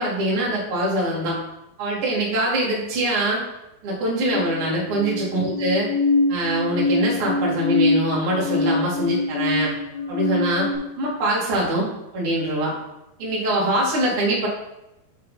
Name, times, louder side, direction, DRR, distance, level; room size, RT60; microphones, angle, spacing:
voice 1, 0.0-1.4 1.8-3.4 3.8-5.9 6.3-9.7 10.1-10.7 11.0-11.9 12.1-12.7 13.2-14.5, right 1 dB, 35° right, -6 dB, 2.6 m, -23 dB
sound 1, 4.3-10.7, left 2 dB, 55° left, 1.7 m, -24 dB
7.8 x 6.2 x 4.2 m, 0.91 s
omnidirectional pair, 5.0 m